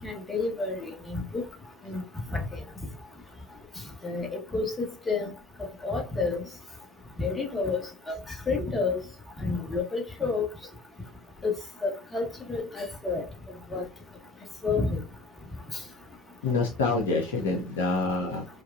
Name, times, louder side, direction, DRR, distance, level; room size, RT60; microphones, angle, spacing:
voice 1, 0.0-1.4 1.9-2.0 2.3-2.4 4.0-5.3 5.8-6.4 7.2-8.1 8.5-9.0 9.4-10.5 11.4-11.6 11.8-13.2 13.7-13.8 14.6-15.0, left 4 dB, 20° left, 1.3 m, -29 dB
voice 2, 16.4-18.5, left 3 dB, 70° left, 0.6 m, -27 dB
4.7 x 2.3 x 2.4 m
figure-of-eight pair, 60°, 0 cm